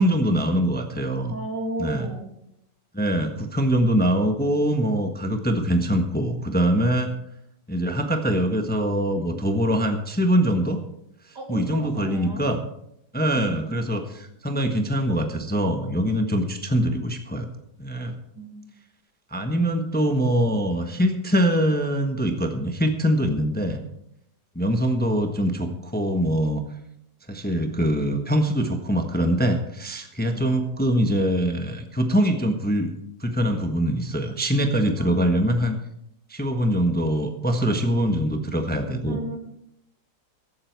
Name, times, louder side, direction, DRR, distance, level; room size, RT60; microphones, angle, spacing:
voice 1, 0.0-1.3 1.8-2.1 2.9-7.1 7.7-10.8 11.3-12.6 13.1-17.5 17.8-18.2 19.3-23.8 24.5-26.7 27.3-32.9 33.2-35.8 36.3-39.2, equal, 5° left, 5 dB, 1.1 m, -23 dB
voice 2, 1.2-2.3 11.4-12.4 13.3-14.1 18.3-18.6 30.2-30.4 35.0-35.6 39.1-39.4, right 1 dB, 80° right, 1 dB, 3.6 m, -34 dB
15.5 x 12.0 x 4.7 m, 0.77 s
omnidirectional pair, 1.8 m